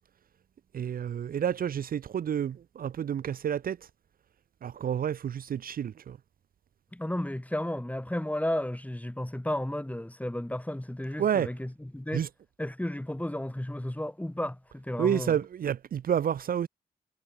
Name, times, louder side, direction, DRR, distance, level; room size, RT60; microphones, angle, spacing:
voice 1, 0.7-3.8 4.6-6.2 11.2-11.5 12.1-12.3 15.0-16.7, right 9 dB, 60° right, 0.6 m, -29 dB
voice 2, 6.9-12.3 12.6-15.4, left 1 dB, 10° left, 3.1 m, -33 dB
supercardioid pair, 45°, 17 cm